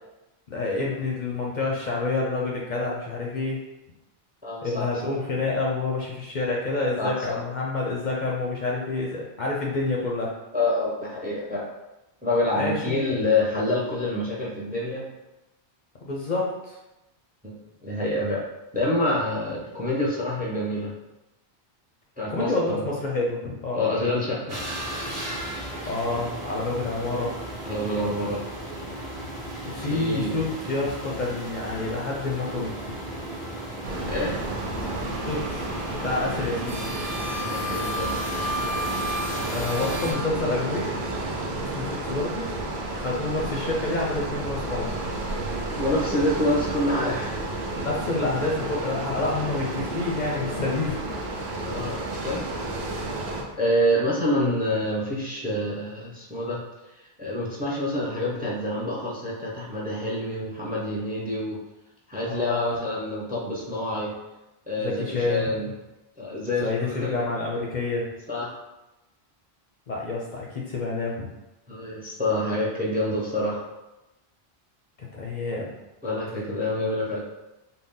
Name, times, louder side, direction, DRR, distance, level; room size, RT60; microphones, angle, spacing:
voice 1, 0.5-3.6 4.6-10.3 12.5-13.0 16.0-16.8 22.3-23.9 25.9-27.4 29.6-33.0 35.3-35.6 36.0-36.9 39.5-40.9 41.6-42.4 42.9-45.0 47.8-51.2 62.2-62.8 64.8-65.5 66.6-68.1 69.9-71.3 75.0-75.7, left 3 dB, 55° left, -3 dB, 0.6 m, -28 dB
voice 2, 4.4-4.8 7.0-7.4 10.5-11.6 12.2-15.1 17.4-18.4 18.7-20.9 22.2-22.9 23.7-24.6 27.6-28.4 29.7-30.3 33.9-34.3 37.4-38.2 45.8-47.4 51.6-52.5 53.6-56.6 57.2-61.6 62.1-64.1 64.7-65.7 66.2-66.7 67.0-67.2 68.3-68.5 71.7-73.6 76.0-77.2, left 1 dB, 10° right, -4 dB, 0.5 m, -27 dB
sound 1, 24.5-40.1, equal, 40° right, 1.2 m, -34 dB
sound 2, 33.8-53.4, right 2 dB, 80° right, 0.9 m, -32 dB
3.9 x 2.1 x 3.6 m, 0.99 s
omnidirectional pair, 1.0 m